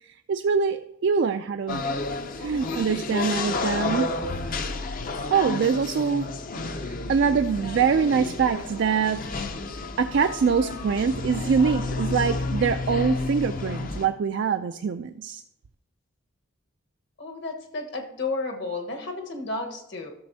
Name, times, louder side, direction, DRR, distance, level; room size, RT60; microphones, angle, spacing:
voice 1, 0.0-1.8 2.4-4.1 5.3-6.3 6.6-9.4 10.0-15.4, right 6 dB, 55° right, 7 dB, 0.3 m, -24 dB
sound 1, 1.7-14.1, left 3 dB, 40° left, 0.6 m, -31 dB
voice 2, 17.2-20.1, left 3 dB, 55° left, 3 dB, 1.3 m, -32 dB
12.5 x 6.8 x 2.7 m, 0.80 s
head